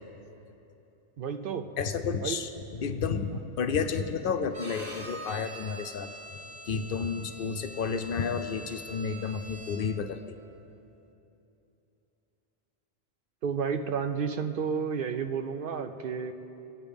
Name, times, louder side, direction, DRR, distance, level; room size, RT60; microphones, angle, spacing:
voice 1, 1.2-1.7 2.2-2.4 13.4-16.3, right 6 dB, 60° right, 7 dB, 0.8 m, -31 dB
voice 2, 1.8-6.1 6.7-10.4, left 5 dB, 65° left, 8 dB, 0.7 m, -31 dB
Bowed string instrument, 4.5-10.1, right 1 dB, 40° right, 1.5 m, -44 dB
21.0 x 8.9 x 3.5 m, 2.9 s
omnidirectional pair, 1.0 m